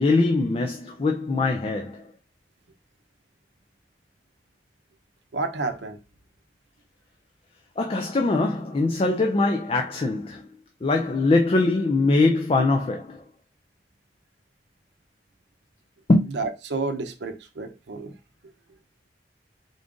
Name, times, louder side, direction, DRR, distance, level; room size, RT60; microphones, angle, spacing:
voice 1, 0.0-2.1 7.8-10.4 10.8-13.2 16.1-16.4, left 2 dB, 30° left, 0.4 m, -22 dB
voice 2, 5.3-6.0 16.3-18.1, right 3 dB, 80° right, 0.6 m, -30 dB
3.8 x 2.4 x 3.6 m
head